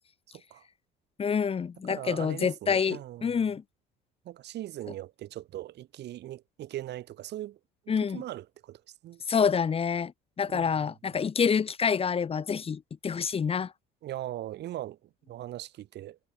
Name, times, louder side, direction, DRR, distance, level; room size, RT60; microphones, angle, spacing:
voice 1, 0.3-0.6 1.9-3.5 4.2-7.6 8.1-9.2 10.5-10.9 14.0-15.0 15.3-16.2, right 13 dB, 60° right, 1.7 m, -40 dB
voice 2, 1.2-3.6 7.9-8.2 9.3-10.1 10.4-13.7, left 6 dB, 30° left, 0.9 m, -27 dB
supercardioid pair, 80°, 20 cm